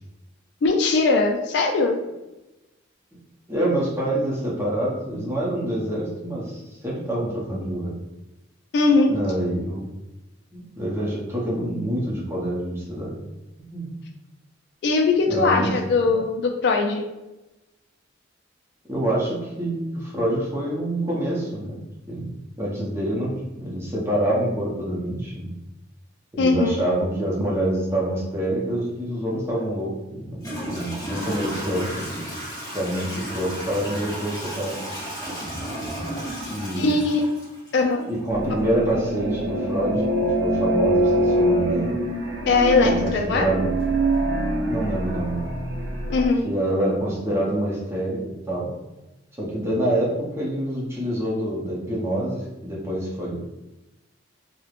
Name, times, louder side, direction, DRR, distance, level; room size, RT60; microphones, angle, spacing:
voice 1, 0.6-2.0 8.7-9.1 14.8-17.1 26.4-26.8 36.8-37.2 37.7-38.0 38.5-38.6 42.5-43.4 46.1-46.4, left 3 dB, 60° left, 3 dB, 0.3 m, -20 dB
voice 2, 3.5-7.9 9.1-9.9 10.5-13.2 13.6-13.9 15.3-15.7 16.0-16.1 18.9-21.8 22.1-25.5 26.3-32.2 32.7-34.8 36.5-37.0 38.1-41.9 42.8-43.7 44.6-45.5 46.4-48.2 48.5-48.8 49.4-53.4, right 1 dB, 15° right, -5 dB, 0.6 m, -26 dB
Toilet flush / Trickle dribble, 29.6-29.7 30.4-38.2, equal, 20° left, 0.9 m, -33 dB
sound 1, 38.3-46.3, right 1 dB, 70° right, 0.5 m, -24 dB
3.0 x 2.0 x 2.4 m, 1.0 s
head